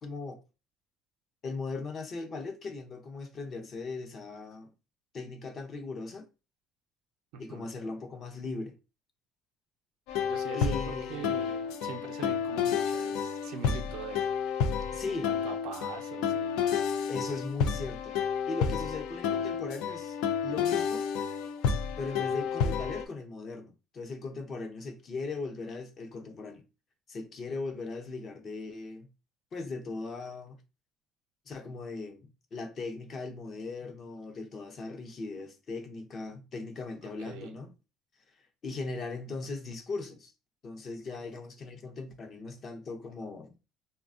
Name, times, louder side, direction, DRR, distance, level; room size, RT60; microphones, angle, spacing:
voice 1, 0.0-0.4 1.4-4.7 5.1-6.3 7.4-8.7 10.5-11.3 14.9-15.3 17.1-18.2 18.5-21.1 22.0-26.6 27.1-29.1 29.5-30.6 31.5-37.7 38.6-40.3 40.6-43.5, left 3 dB, 40° left, 0.5 m, -38 dB
voice 2, 7.3-7.6 10.2-14.3 15.0-16.8 37.2-37.6, right 7 dB, 90° right, 0.6 m, -43 dB
sound 1, 10.1-23.0, left 7 dB, 85° left, 0.3 m, -30 dB
3.3 x 2.2 x 2.5 m
cardioid pair, 135°, 0 cm